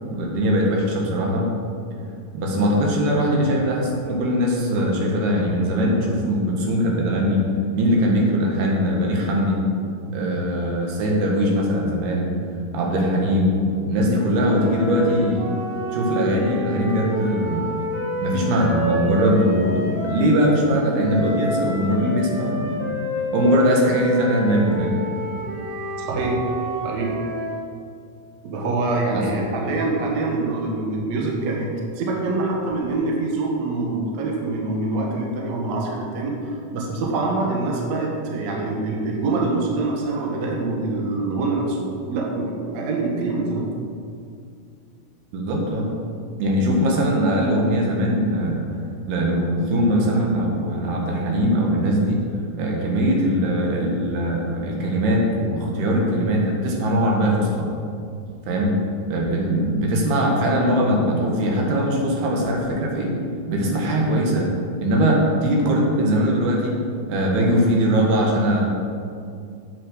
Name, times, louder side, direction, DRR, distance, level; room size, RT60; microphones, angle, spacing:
voice 1, 0.0-1.5 2.3-7.4 7.8-9.6 10.1-12.3 12.7-13.6 13.9-15.4 15.9-17.8 18.2-23.0 23.3-25.0 29.1-29.2 45.3-45.9 46.4-48.7 49.1-52.3 52.5-57.7 58.5-58.7 59.1-63.2 63.5-64.5 64.8-66.7 67.1-68.6, equal, 80° right, -1 dB, 3.6 m, -21 dB
sound 1, 14.3-20.4 21.0-27.6, equal, 40° right, 3.8 m, -29 dB
voice 2, 26.1-26.5 26.8-27.2 28.4-31.7 32.0-43.7, right 3 dB, 60° right, -1 dB, 2.1 m, -25 dB
8.3 x 7.8 x 6.5 m, 2.4 s
omnidirectional pair, 4.5 m